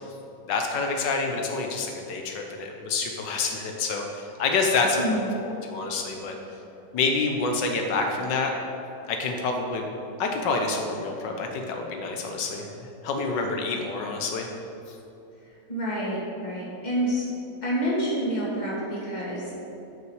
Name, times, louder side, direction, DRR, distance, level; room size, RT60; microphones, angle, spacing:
voice 1, 0.5-6.4 6.9-8.5 9.1-9.9 10.2-14.5 14.9-15.0, left 4 dB, 85° left, 2 dB, 1.5 m, -27 dB
voice 2, 5.0-5.3 15.7-17.3 17.6-19.5, equal, 25° left, -6 dB, 2.2 m, -28 dB
12.0 x 5.6 x 4.8 m, 2.9 s
omnidirectional pair, 1.9 m